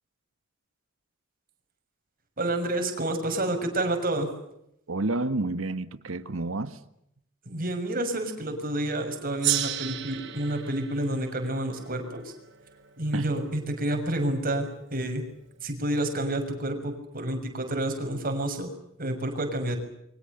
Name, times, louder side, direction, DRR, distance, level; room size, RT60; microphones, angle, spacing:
voice 1, 2.4-4.3 7.4-12.3 13.0-15.2 15.6-18.7 19.0-19.8, right 1 dB, 45° right, 6.5 m, -29 dB
voice 2, 4.9-6.8 13.1-13.3, right 2 dB, 80° right, 1.5 m, -30 dB
Gong, 9.4-14.2, right 12 dB, 60° right, 4.0 m, -34 dB
29.0 x 24.5 x 6.8 m
head